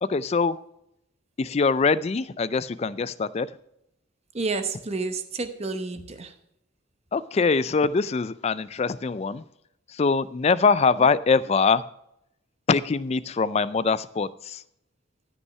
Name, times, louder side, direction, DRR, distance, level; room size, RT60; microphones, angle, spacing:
voice 1, 0.0-0.6 1.4-3.5 7.1-9.4 9.9-11.8 12.7-14.6, left 4 dB, 30° left, 16 dB, 0.3 m, -23 dB
voice 2, 4.3-6.3 11.0-11.1, right 3 dB, 30° right, 8 dB, 0.8 m, -30 dB
13.0 x 5.5 x 5.7 m, 0.78 s
head